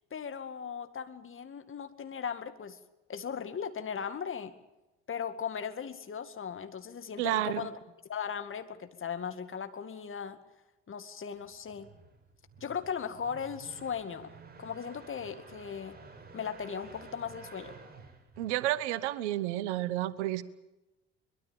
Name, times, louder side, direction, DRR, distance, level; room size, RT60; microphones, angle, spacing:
voice 1, 0.1-2.8 3.1-4.5 5.1-7.7 8.1-10.4 10.9-11.9 12.6-16.0 16.3-17.8, left 7 dB, 35° left, 9 dB, 2.2 m, -38 dB
voice 2, 7.2-7.6 18.4-20.4, right 14 dB, 70° right, 18 dB, 1.1 m, -30 dB
sound 1, 11.4-19.0, right 4 dB, 25° right, 6.1 m, -52 dB
23.0 x 22.0 x 7.0 m, 0.98 s
figure-of-eight pair, 55°, 35 cm